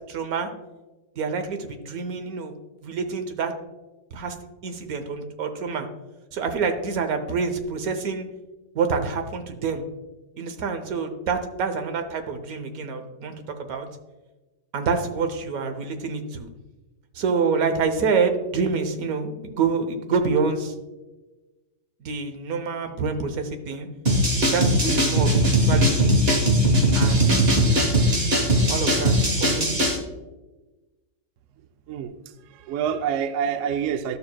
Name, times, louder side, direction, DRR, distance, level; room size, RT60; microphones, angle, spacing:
voice 1, 0.1-0.5 1.2-2.5 2.8-3.5 4.1-4.3 4.6-5.9 6.3-8.3 8.7-9.8 10.4-13.9 14.7-16.5 17.1-20.7 22.0-23.9 24.5-26.1 26.9-27.3 27.6-28.0 28.7-29.7, right 5 dB, 60° right, 7 dB, 1.2 m, -27 dB
sound 1, 24.1-30.0, equal, 35° right, 1.4 m, -20 dB
voice 2, 32.5-34.2, right 8 dB, 90° right, 9 dB, 0.6 m, -26 dB
12.0 x 6.9 x 2.2 m, 1.1 s
omnidirectional pair, 1.9 m